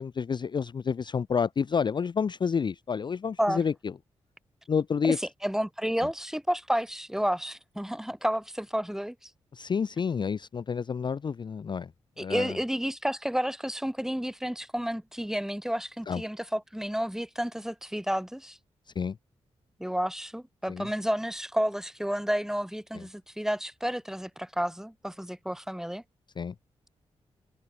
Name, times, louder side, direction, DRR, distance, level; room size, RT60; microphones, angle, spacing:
voice 1, 0.0-3.9 4.7-5.2 9.5-11.9 12.2-12.6 16.1-16.2 19.0-19.2 20.7-20.9 22.9-23.1 26.4-26.5, left 6 dB, 40° left, 0.4 m, -29 dB
voice 2, 5.0-9.3 12.2-18.6 19.8-26.0, equal, 5° right, 1.6 m, -31 dB
open air
supercardioid pair, 40°, 12 cm